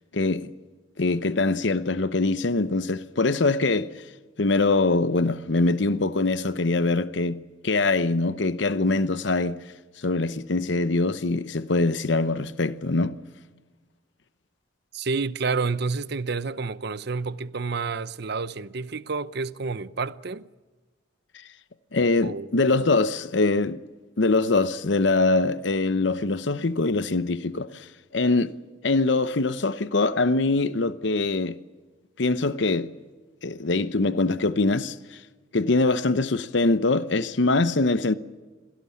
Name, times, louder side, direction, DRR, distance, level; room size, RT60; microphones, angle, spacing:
voice 1, 0.1-0.5 1.0-3.9 4.4-9.6 10.0-13.2 21.9-23.8 24.2-27.9 28.1-28.5 28.8-31.6 32.2-32.9 33.4-35.0 35.5-38.1, left 3 dB, 65° left, 0.8 m, -23 dB
voice 2, 14.9-20.5 22.2-23.0, right 4 dB, 60° right, 0.7 m, -29 dB
26.5 x 17.5 x 8.5 m
head